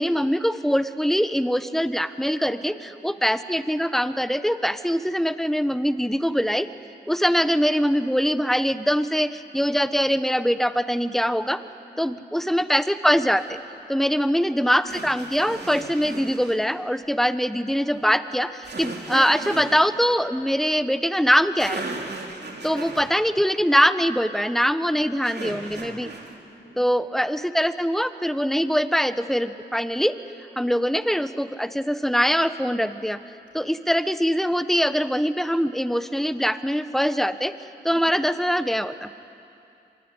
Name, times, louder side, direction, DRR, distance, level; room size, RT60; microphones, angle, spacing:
voice 1, 0.0-6.7 7.1-11.6 12.0-13.6 13.9-21.8 22.6-26.1 26.8-30.2 30.6-33.2 33.5-37.5 37.8-39.1, equal, ahead, 12 dB, 1.2 m, -23 dB
voice 2, 2.3-3.2 7.2-7.4 11.9-12.1 13.9-14.2 22.3-22.7 26.4-26.8 37.8-38.1 39.2-39.3, equal, 80° left, -5 dB, 6.1 m, -50 dB
sound 1, 13.3-13.5 14.9-16.6 18.6-19.8 21.3-21.4 21.6-23.1 25.2-26.4, right 3 dB, 60° right, 3.2 m, -36 dB
25.5 x 21.0 x 9.9 m, 2.6 s
cardioid pair, 45°, 19 cm